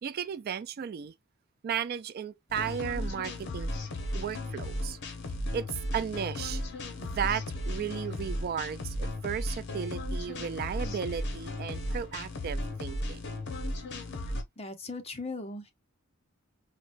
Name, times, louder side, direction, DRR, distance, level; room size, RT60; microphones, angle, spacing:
voice 1, 0.0-1.1 1.6-3.7 4.1-5.0 5.5-6.6 7.0-13.3, right 8 dB, 50° right, 0.3 m, -35 dB
sound 1, 2.5-14.4, left 1 dB, 55° left, 0.9 m, -35 dB
voice 2, 14.6-15.7, left 3 dB, 30° left, 0.8 m, -38 dB
4.9 x 2.2 x 2.5 m
head